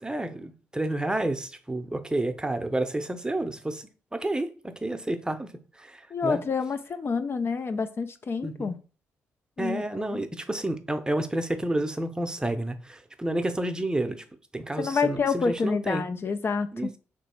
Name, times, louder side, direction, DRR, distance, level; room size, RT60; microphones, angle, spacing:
voice 1, 0.0-5.5 5.8-6.4 8.4-8.7 9.6-14.2 14.5-16.0 16.7-17.0, right 1 dB, 15° right, 0.7 m, -30 dB
voice 2, 6.1-8.8 9.6-10.2 14.8-16.9, left 5 dB, 45° left, 0.4 m, -28 dB
3.1 x 3.0 x 4.3 m
supercardioid pair, 50°, 6 cm